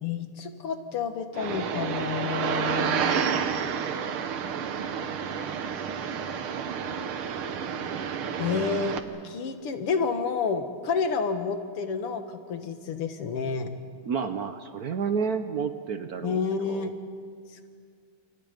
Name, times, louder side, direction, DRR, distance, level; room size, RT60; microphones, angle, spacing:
voice 1, 0.0-3.2 8.4-8.9 9.2-13.7 16.2-16.9, left 5 dB, 90° left, 7 dB, 2.5 m, -29 dB
sound 1, 1.3-9.0, right 7 dB, 75° right, 2.0 m, -30 dB
voice 2, 14.1-16.4 16.7-16.9, right 6 dB, 55° right, 9 dB, 1.1 m, -30 dB
29.5 x 28.0 x 5.3 m, 2.1 s
omnidirectional pair, 2.4 m